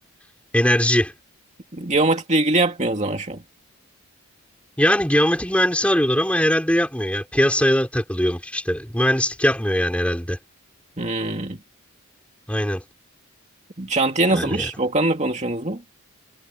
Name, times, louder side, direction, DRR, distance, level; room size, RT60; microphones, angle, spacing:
voice 1, 0.5-1.1 4.8-10.4 12.5-12.8 14.3-14.7, equal, 5° left, 4.6 m, -21 dB
voice 2, 1.7-3.4 11.0-11.6 13.8-15.8, right 2 dB, 30° right, 2.3 m, -22 dB
head